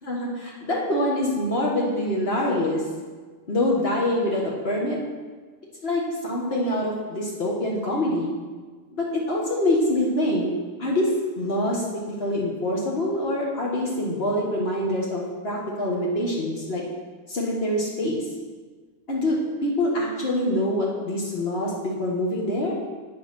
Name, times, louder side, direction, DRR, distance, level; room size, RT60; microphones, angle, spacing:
voice 1, 0.0-2.8 3.5-5.0 5.8-8.3 8.9-10.5 10.8-11.1 11.4-16.8 17.3-18.3 19.1-22.8, left 1 dB, 85° left, -4 dB, 0.5 m, -25 dB
8.9 x 6.9 x 6.2 m, 1.4 s
omnidirectional pair, 3.6 m